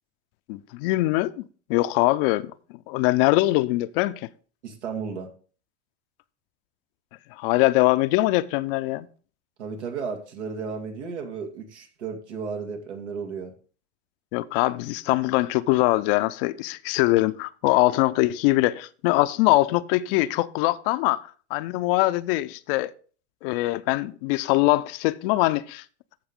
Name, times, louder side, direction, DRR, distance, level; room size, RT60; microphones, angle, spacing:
voice 1, 0.5-1.4 1.7-2.5 2.9-4.3 7.4-9.1 14.3-21.2 21.5-22.9 23.4-25.8, left 19 dB, 55° left, 0.6 m, -22 dB
voice 2, 4.6-5.3 9.6-13.5, right 5 dB, 80° right, 2.4 m, -34 dB
14.0 x 4.7 x 3.7 m
hypercardioid pair, 100°, 34 cm